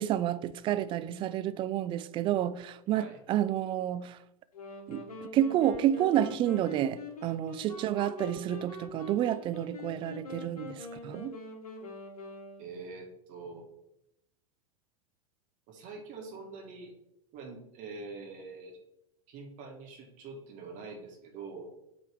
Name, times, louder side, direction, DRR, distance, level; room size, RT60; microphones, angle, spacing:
voice 1, 0.0-4.2 4.9-5.0 5.3-11.4, right 11 dB, 25° right, 0.3 m, -30 dB
sound 1, 4.5-13.0, left 3 dB, 75° left, 1.3 m, -44 dB
voice 2, 12.6-13.7 15.7-16.9 17.3-18.8 19.3-21.8, right 4 dB, 40° right, 1.6 m, -44 dB
8.1 x 3.4 x 3.6 m
hypercardioid pair, 95°, 19 cm